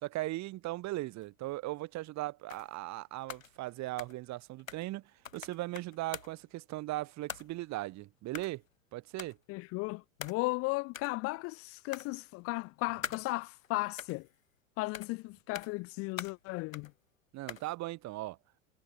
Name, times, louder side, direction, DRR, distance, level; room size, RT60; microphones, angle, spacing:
voice 1, 0.0-5.0 5.3-8.6 8.9-9.4 17.3-18.4, right 18 dB, 45° right, 2.7 m, -38 dB
sound 1, 1.2-1.3 2.5-2.9 3.2-5.0 5.2-6.5 7.3-7.8 8.3-8.7 9.2-9.4 10.2-10.6 10.9-11.2 11.9-12.5 13.0-13.7 14.0-14.6 14.9-15.2 15.5-15.9 16.2-17.0 17.5-17.8, left 7 dB, 80° left, 5.4 m, -45 dB
voice 2, 9.5-14.3 14.8-16.9, left 24 dB, 35° left, 0.5 m, -35 dB
figure-of-eight pair, 80°, 39 cm